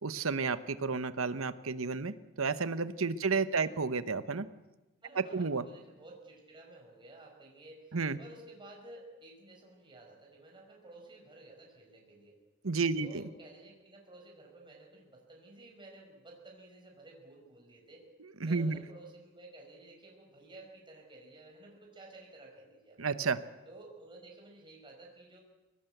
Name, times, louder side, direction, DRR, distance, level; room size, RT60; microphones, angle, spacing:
voice 1, 0.0-4.5 5.3-5.6 7.9-8.2 12.6-13.1 18.4-18.8 23.0-23.4, right 4 dB, 75° right, 13 dB, 1.1 m, -31 dB
voice 2, 5.0-12.4 12.9-18.1 18.4-23.0 23.7-25.4, right 2 dB, 25° right, -1 dB, 5.4 m, -53 dB
23.5 x 19.0 x 8.0 m, 1.1 s
head